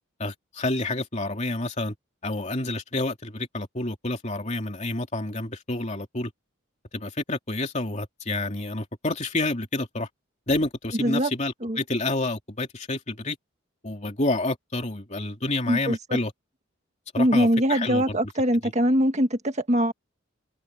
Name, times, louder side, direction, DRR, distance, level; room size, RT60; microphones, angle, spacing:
voice 1, 0.2-1.9 2.2-6.3 6.9-10.1 10.5-13.4 13.8-16.3 17.1-18.2, left 2 dB, 35° left, 2.9 m, -29 dB
voice 2, 11.0-11.3 11.6-11.8 15.7-16.2 17.2-19.9, equal, 35° right, 1.8 m, -22 dB
head